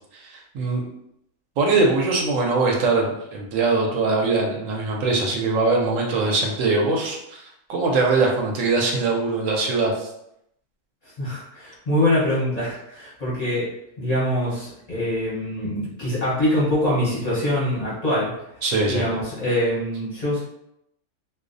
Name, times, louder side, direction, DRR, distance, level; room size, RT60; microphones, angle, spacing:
voice 1, 0.1-0.8 1.6-7.4 7.7-10.1 18.6-19.0, right 3 dB, 70° right, 0 dB, 0.8 m, -22 dB
voice 2, 11.2-13.7 14.0-18.3 18.9-20.4, left 1 dB, 40° left, -9 dB, 0.6 m, -24 dB
2.5 x 2.0 x 2.5 m, 0.79 s
omnidirectional pair, 1.6 m